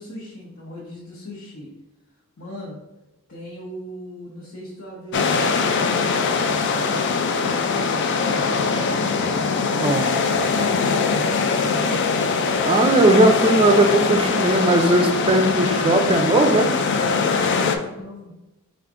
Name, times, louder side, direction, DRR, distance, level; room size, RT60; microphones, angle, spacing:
voice 1, 0.0-1.7 2.4-2.8 3.3-8.1 9.1-12.3 17.1-18.3, left 1 dB, 75° left, -7 dB, 1.0 m, -38 dB
sound 1, 5.1-17.8, left 4 dB, 55° left, 0.4 m, -22 dB
voice 2, 9.7-10.1 12.6-16.7, right 1 dB, 25° right, 6 dB, 0.4 m, -18 dB
4.5 x 2.5 x 3.6 m, 1.0 s
head